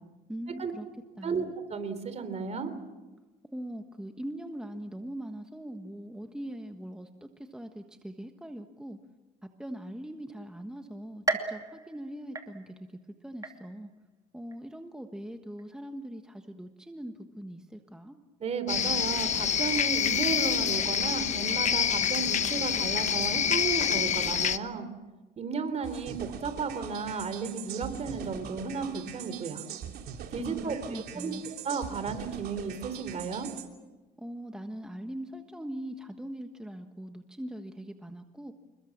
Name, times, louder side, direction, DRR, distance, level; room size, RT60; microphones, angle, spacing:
voice 1, 0.3-0.9 1.2-1.5 3.5-9.0 9.4-13.9 14.3-18.2 30.4-31.4 34.2-38.5, right 1 dB, 5° right, 5 dB, 1.4 m, -41 dB
voice 2, 1.2-2.7 18.4-24.9 25.4-29.7 30.3-30.8 31.1-33.5, right 5 dB, 40° right, 11 dB, 3.7 m, -33 dB
sound 1, 11.3-13.0 13.4-14.0 14.5-14.6 15.6-15.7, right 3 dB, 20° right, 2.7 m, -35 dB
sound 2, 18.7-24.6, left 8 dB, 45° left, 1.0 m, -27 dB
sound 3, 25.8-33.7, right 8 dB, 70° right, 3.1 m, -42 dB
28.0 x 22.0 x 7.3 m, 1.1 s
cardioid pair, 110°, 17 cm